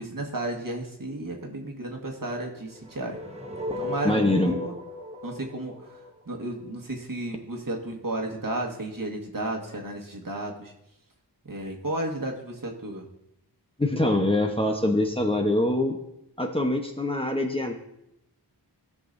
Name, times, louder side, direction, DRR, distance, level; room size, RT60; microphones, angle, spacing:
voice 1, 0.0-3.2 3.8-4.7 5.2-10.7 11.4-13.1, right 1 dB, 50° right, 1 dB, 1.6 m, -33 dB
sound 1, 2.7-6.8, left 1 dB, 15° right, 1.1 m, -36 dB
voice 2, 4.0-4.6 13.8-16.0 16.4-17.7, left 1 dB, 15° left, 2 dB, 0.9 m, -24 dB
17.0 x 6.1 x 2.6 m, 0.82 s
wide cardioid pair, 60°, 41 cm